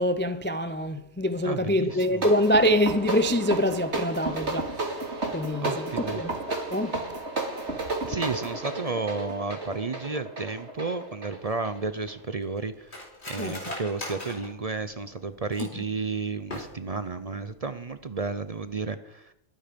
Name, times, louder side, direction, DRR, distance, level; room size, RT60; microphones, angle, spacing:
voice 1, 0.0-5.0 5.3-7.0 13.4-13.8 15.8-15.9, equal, 15° left, 0.4 m, -25 dB
voice 2, 1.4-2.3 5.6-6.2 8.0-19.3, right 4 dB, 40° right, 0.6 m, -32 dB
sound 1, 1.9-12.2, right 2 dB, 60° right, 2.9 m, -32 dB
Cutlery silverware, 11.5-15.9 16.4-17.1 17.4-17.5 17.8-18.2 18.5-18.7, left 1 dB, 55° left, 4.3 m, -41 dB
21.5 x 9.8 x 5.2 m
omnidirectional pair, 1.3 m